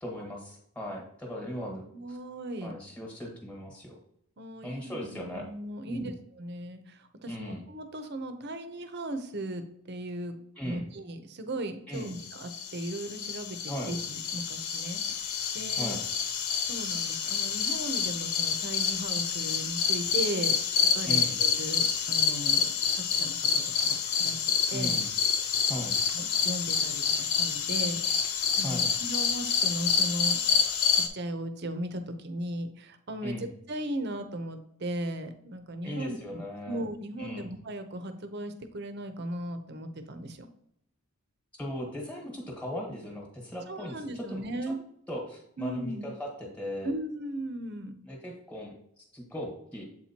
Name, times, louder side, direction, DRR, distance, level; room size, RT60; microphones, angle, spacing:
voice 1, 0.0-2.2 2.6-3.9 4.6-5.5 5.9-6.2 7.3-7.6 10.6-10.8 11.9-12.1 13.7-14.0 15.8-16.0 21.0-21.4 24.7-25.1 25.6-26.0 28.6-28.9 33.2-33.5 35.8-36.8 37.2-37.5 41.6-44.4 45.1-46.9 48.0-48.7 49.1-49.8, equal, 5° left, 0 dB, 1.4 m, -38 dB
voice 2, 1.9-2.8 4.4-16.0 16.6-24.4 24.7-25.0 26.1-30.4 30.9-40.5 43.7-44.8 45.6-46.1 46.8-47.9, right 1 dB, 50° right, 8 dB, 0.7 m, -37 dB
sound 1, 12.2-31.1, left 6 dB, 85° left, 0.8 m, -28 dB
7.7 x 4.4 x 2.9 m, 0.73 s
head